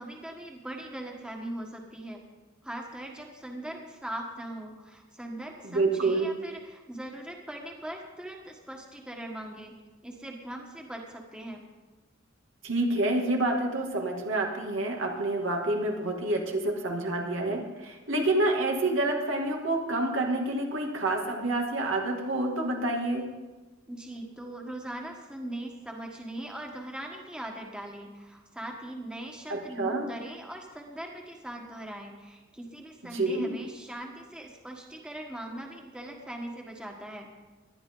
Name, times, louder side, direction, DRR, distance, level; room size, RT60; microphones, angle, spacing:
voice 1, 0.0-2.2 2.6-9.7 10.0-11.6 23.9-37.3, right 1 dB, 5° right, 1 dB, 1.4 m, -40 dB
voice 2, 5.6-6.3 12.6-23.3 29.5-30.1 33.1-33.5, right 2 dB, 90° right, 1 dB, 2.5 m, -28 dB
19.0 x 11.5 x 3.9 m, 1.2 s
head